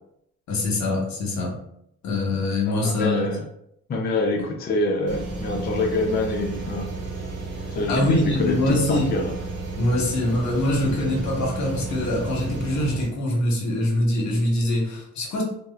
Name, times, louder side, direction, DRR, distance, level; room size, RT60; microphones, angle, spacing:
voice 1, 0.5-1.6 2.0-3.3 7.9-9.1 9.8-15.4, left 1 dB, 70° left, -1 dB, 0.9 m, -23 dB
voice 2, 2.7-3.4 3.9-6.9 7.7-9.3, left 2 dB, 35° left, 0 dB, 0.4 m, -26 dB
sound 1, 5.1-13.1, right 2 dB, 55° right, 0.8 m, -32 dB
2.7 x 2.0 x 2.2 m, 0.74 s
cardioid pair, 90°, 30 cm